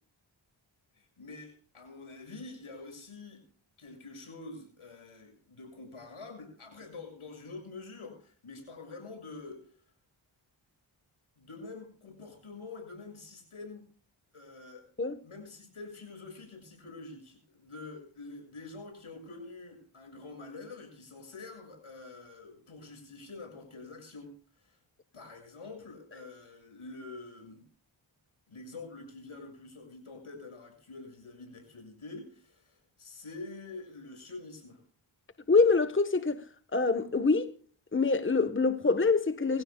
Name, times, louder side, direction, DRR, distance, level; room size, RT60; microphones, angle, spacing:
voice 1, 0.9-3.4 3.8-9.6 11.4-13.9 14.3-14.9 15.2-24.3 24.6-24.8 25.1-27.6 28.5-34.8, left 3 dB, 80° left, 6.9 m, -46 dB
voice 2, 35.5-36.4 36.7-37.5 37.9-39.6, left 4 dB, 25° left, 1.3 m, -25 dB
24.0 x 15.5 x 2.3 m
cardioid pair, 55°, 49 cm